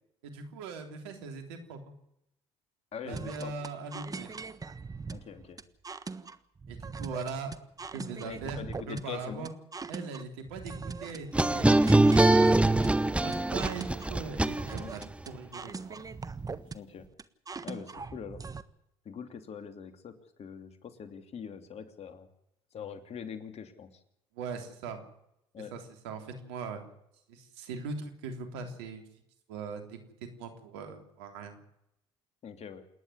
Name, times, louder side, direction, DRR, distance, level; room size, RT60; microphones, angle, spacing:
voice 1, 0.2-1.9 3.0-4.3 6.7-7.5 7.9-8.6 8.9-9.5 9.9-12.8 13.2-16.0 24.3-25.0 25.7-26.8 27.3-29.0 29.5-31.6, right 4 dB, 80° right, 5 dB, 3.4 m, -40 dB
voice 2, 2.9-3.5 5.1-5.6 8.2-9.5 14.7-15.0 16.7-17.1 17.6-18.4 19.0-22.3 22.7-24.0 25.5-25.7 32.4-32.8, left 7 dB, 50° left, 8 dB, 3.0 m, -43 dB
sound 1, 3.1-18.6, right 4 dB, 25° right, 1.4 m, -41 dB
sound 2, 11.3-15.0, right 2 dB, 10° right, 0.9 m, -23 dB
28.0 x 10.5 x 9.9 m, 0.80 s
hypercardioid pair, 60°, 13 cm